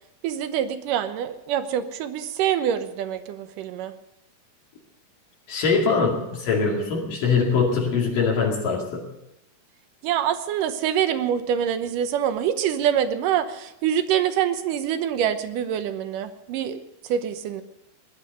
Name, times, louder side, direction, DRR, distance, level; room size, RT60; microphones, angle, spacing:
voice 1, 0.2-3.9 10.0-16.8 17.1-17.6, right 9 dB, 75° right, 10 dB, 2.5 m, -25 dB
voice 2, 5.5-9.1, left 5 dB, 70° left, -2 dB, 3.9 m, -22 dB
19.0 x 11.5 x 6.6 m, 0.86 s
omnidirectional pair, 4.0 m